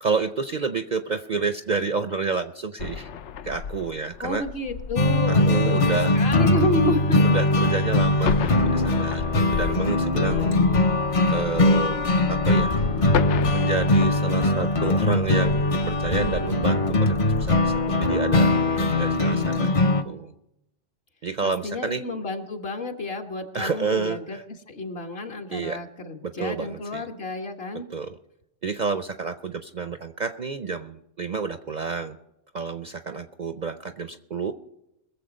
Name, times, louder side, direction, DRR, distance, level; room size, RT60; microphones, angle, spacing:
voice 1, 0.0-3.1 3.4-4.4 5.3-6.1 7.2-8.3 8.6-10.5 11.3-12.0 12.3-13.2 13.5-20.3 21.2-22.0 23.5-24.4 25.5-25.8 26.2-27.1 27.9-28.2 28.6-32.2 32.5-34.5, right 4 dB, 50° right, 9 dB, 0.6 m, -29 dB
sound 1, 2.8-17.9, left 6 dB, 70° left, 0.9 m, -34 dB
voice 2, 4.2-7.4 10.3-12.1 21.4-24.4 24.7-27.9, left 2 dB, 55° left, 3 dB, 1.7 m, -31 dB
sound 2, 5.0-20.0, left 2 dB, 35° left, 0.7 m, -21 dB
22.0 x 7.3 x 5.2 m, 0.86 s
omnidirectional pair, 1.3 m